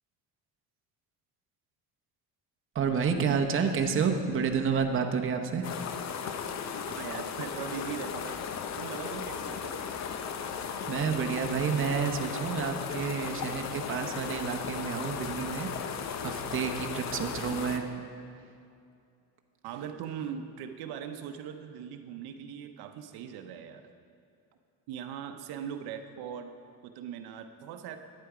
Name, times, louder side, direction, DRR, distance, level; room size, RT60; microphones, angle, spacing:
voice 1, 2.7-5.6 10.9-15.7 16.2-18.0, right 6 dB, 35° right, 4 dB, 0.9 m, -29 dB
sound 1, 5.6-17.8, left 7 dB, 45° left, 0.7 m, -36 dB
voice 2, 6.9-8.4 8.8-9.8 19.6-23.9 24.9-26.5 26.8-28.0, right 8 dB, 80° right, 7 dB, 0.8 m, -40 dB
11.5 x 9.4 x 4.9 m, 2.4 s
cardioid pair, 130°, 38 cm